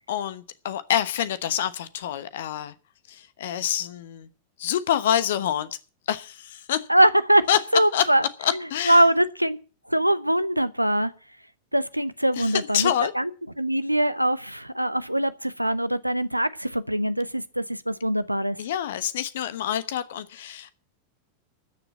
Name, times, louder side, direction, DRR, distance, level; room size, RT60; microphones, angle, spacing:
voice 1, 0.1-2.7 3.1-4.3 4.6-5.7 6.1-6.9 7.5-7.6 7.9-8.1 8.4-9.0 12.4-13.1 18.6-20.7, left 10 dB, 60° left, 1.0 m, -26 dB
voice 2, 6.9-7.5 7.7-8.2 8.9-9.6 9.9-11.1 11.7-13.3 13.6-18.6, right 1 dB, 90° right, 0.8 m, -22 dB
13.5 x 7.0 x 8.3 m
figure-of-eight pair, 90°, 0 cm